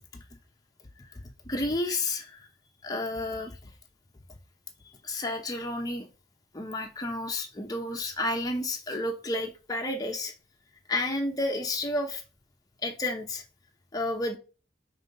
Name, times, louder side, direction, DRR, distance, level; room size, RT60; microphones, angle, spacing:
voice 1, 1.0-2.5 2.8-3.7 5.0-6.1 6.5-10.3 10.9-12.2 12.8-13.4 13.9-14.4, left 2 dB, 20° left, 2 dB, 0.9 m, -31 dB
5.2 x 3.3 x 5.4 m, 0.33 s
head